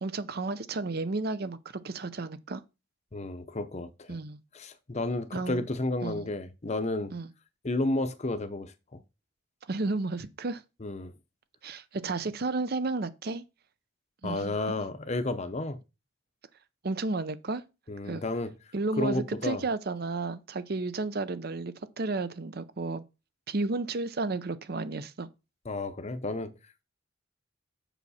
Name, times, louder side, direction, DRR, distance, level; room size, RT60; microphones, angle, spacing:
voice 1, 0.0-2.6 4.1-4.4 5.3-5.6 6.0-6.3 7.1-7.3 9.7-10.6 11.6-13.4 14.2-14.6 16.8-17.6 18.0-18.2 18.7-23.0 23.5-25.3, right 3 dB, 50° right, 0.6 m, -32 dB
voice 2, 3.1-4.2 4.5-7.1 7.6-9.0 10.8-11.1 14.2-15.8 17.9-18.5 19.0-19.6 25.7-26.5, left 2 dB, 35° left, 0.7 m, -32 dB
7.0 x 5.9 x 4.2 m
head